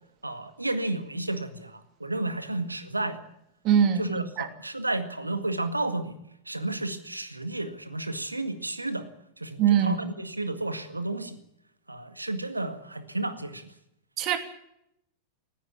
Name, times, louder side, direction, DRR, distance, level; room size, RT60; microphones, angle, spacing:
voice 1, 0.2-3.2 4.0-6.2 6.5-9.1 9.4-11.4 11.9-13.7, right 2 dB, 85° right, 10 dB, 1.9 m, -32 dB
voice 2, 3.6-4.5 9.6-10.1 14.2-14.4, right 9 dB, 40° right, 8 dB, 3.0 m, -23 dB
19.5 x 16.5 x 8.5 m, 0.78 s
figure-of-eight pair, 90°, 0 cm